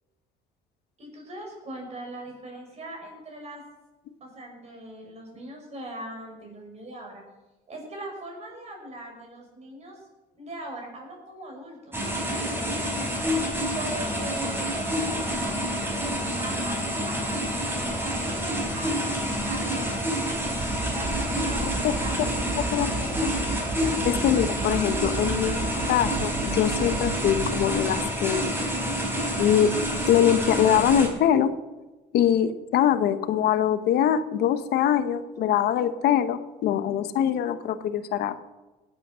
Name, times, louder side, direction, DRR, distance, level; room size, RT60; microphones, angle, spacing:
voice 1, 1.0-3.6 4.2-7.2 7.7-10.0 10.4-13.1 13.6-15.6 15.9-17.3 17.8-20.1 20.5-20.6 20.9-23.4, right 1 dB, 40° right, 1 dB, 6.0 m, -40 dB
sound 1, 11.9-31.1, equal, 15° right, 4.4 m, -28 dB
sound 2, 20.6-27.7, right 5 dB, 70° right, 2.7 m, -33 dB
voice 2, 21.8-22.3 22.7-22.9 24.0-28.4 29.4-29.8 30.1-31.5 32.1-38.4, left 10 dB, 70° left, 11 dB, 1.0 m, -23 dB
18.5 x 8.7 x 6.2 m, 1.1 s
cardioid pair, 110°, 17 cm